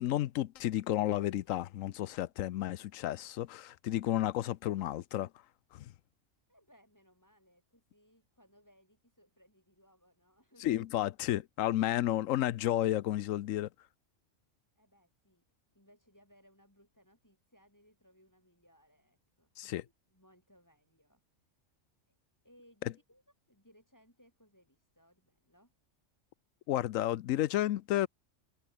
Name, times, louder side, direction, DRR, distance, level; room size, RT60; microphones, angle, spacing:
voice 1, 0.0-5.3 5.7-5.9 10.6-13.7 19.6-19.8 26.7-28.1, left 13 dB, 85° left, 1.0 m, -32 dB
voice 2, 6.5-10.8 14.8-15.4 15.7-21.2 22.4-23.2 23.5-25.7, equal, 15° left, 7.6 m, -65 dB
omnidirectional pair, 1.3 m